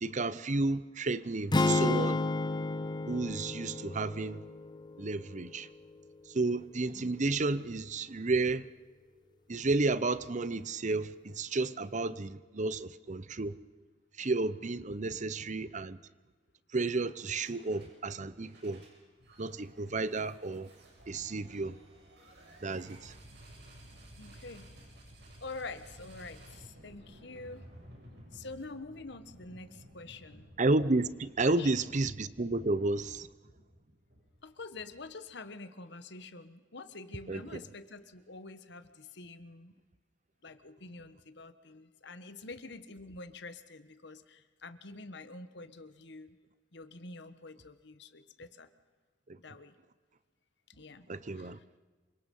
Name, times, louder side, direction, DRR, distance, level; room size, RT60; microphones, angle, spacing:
voice 1, 0.0-2.2 3.1-4.4 5.0-5.7 6.3-8.7 9.5-13.6 14.2-16.0 16.7-18.8 19.4-20.7 21.1-21.8 22.6-23.1 30.6-33.3 37.3-37.4 49.3-49.4 51.1-51.6, right 3 dB, 40° right, 0.8 m, -32 dB
sound 1, 1.5-5.7, left 2 dB, 25° left, 0.7 m, -32 dB
sound 2, 17.2-18.0 18.3-35.3, right 1 dB, 65° right, 7.4 m, -55 dB
voice 2, 24.2-24.8 25.4-27.6 28.3-30.5 31.4-31.7 34.4-39.7 40.4-46.4 46.7-48.7 49.4-49.7 50.7-51.1 51.3-51.6, left 3 dB, 65° left, 1.4 m, -47 dB
28.0 x 25.0 x 5.5 m
head